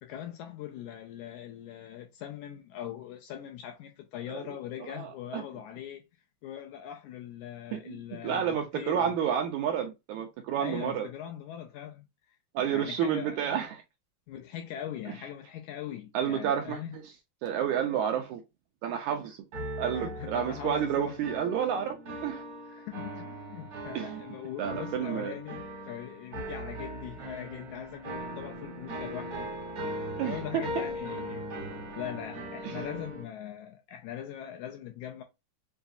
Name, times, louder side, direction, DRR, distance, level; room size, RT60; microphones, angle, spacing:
voice 1, 0.0-6.0 6.4-9.1 10.6-12.4 12.7-13.6 14.3-16.9 19.9-21.2 22.1-22.3 22.7-29.9 30.2-31.5 32.0-35.2, left 11 dB, 80° left, 1.8 m, -41 dB
voice 2, 4.8-5.4 7.7-8.0 8.2-11.1 12.5-13.8 16.1-16.8 17.4-18.4 18.8-19.4 19.8-22.0 22.2-22.4 23.9-24.2 24.6-25.3 30.2-30.6 32.6-32.8, right 8 dB, 80° right, 1.7 m, -30 dB
sound 1, 19.5-33.2, right 1 dB, 50° right, 1.1 m, -39 dB
7.0 x 2.3 x 2.6 m
omnidirectional pair, 3.9 m